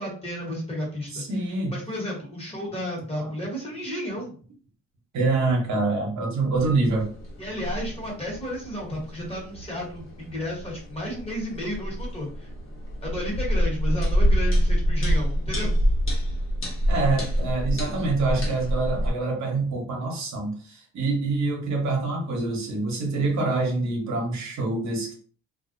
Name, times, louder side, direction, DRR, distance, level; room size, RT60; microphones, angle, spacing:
voice 1, 0.0-1.2 1.7-4.3 7.4-12.5 13.0-15.8, left 1 dB, 20° left, -3 dB, 1.2 m, -32 dB
voice 2, 1.1-1.8 3.2-3.3 5.1-7.1 16.9-25.1, right 3 dB, 65° right, -1 dB, 0.9 m, -26 dB
sound 1, 6.5-19.1, equal, 45° left, 1.0 m, -27 dB
2.4 x 2.0 x 2.5 m, 0.43 s
cardioid pair, 90°, 30 cm